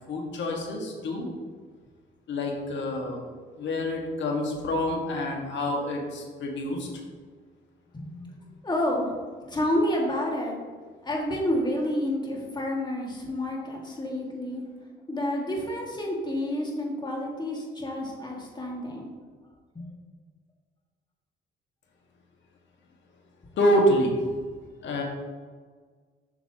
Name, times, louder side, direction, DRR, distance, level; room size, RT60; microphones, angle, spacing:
voice 1, 0.1-1.3 2.3-3.2 3.6-6.9 23.6-24.2 24.8-25.0, equal, 65° left, 0 dB, 1.7 m, -27 dB
voice 2, 7.9-8.3 8.6-9.1 9.5-10.6 11.0-14.6 15.1-19.1 19.7-19.9, left 1 dB, 20° left, -2 dB, 2.0 m, -29 dB
7.9 x 6.1 x 2.9 m, 1.5 s
cardioid pair, 90°, 20 cm